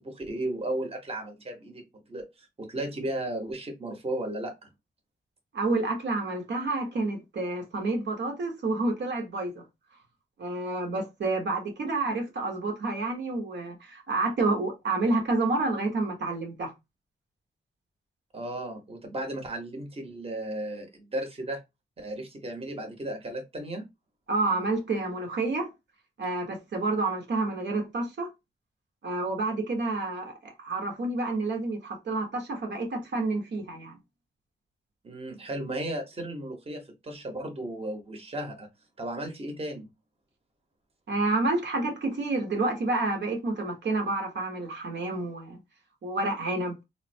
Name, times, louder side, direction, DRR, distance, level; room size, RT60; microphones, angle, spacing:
voice 1, 0.0-4.7 18.3-21.6 22.0-23.9 35.0-38.7 39.0-39.9, right 1 dB, 30° right, 0.9 m, -35 dB
voice 2, 5.5-9.6 10.4-16.7 24.3-25.7 26.2-28.3 29.0-34.0 41.1-45.6 46.0-46.7, right 2 dB, 60° right, 0.9 m, -29 dB
3.8 x 2.1 x 2.6 m
wide cardioid pair, 115°, 20 cm